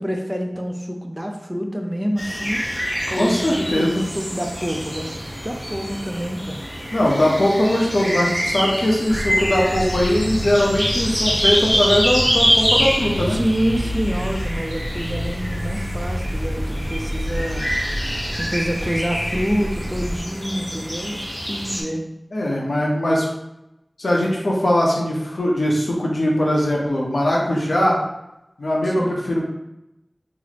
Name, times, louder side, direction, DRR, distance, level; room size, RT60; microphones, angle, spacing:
voice 1, 0.0-5.2 5.4-6.6 13.3-17.7 18.4-22.0 28.8-29.2, equal, 10° right, 2 dB, 0.5 m, -27 dB
sound 1, 2.2-21.8, equal, 5° left, 1.0 m, -26 dB
voice 2, 3.1-4.1 6.9-13.4 22.3-23.3 24.0-28.0 28.6-29.4, left 1 dB, 80° left, -2 dB, 0.8 m, -20 dB
sound 2, 9.1-20.2, equal, 25° right, 1.2 m, -29 dB
3.0 x 2.0 x 4.0 m, 0.89 s
wide cardioid pair, 50°, 0 cm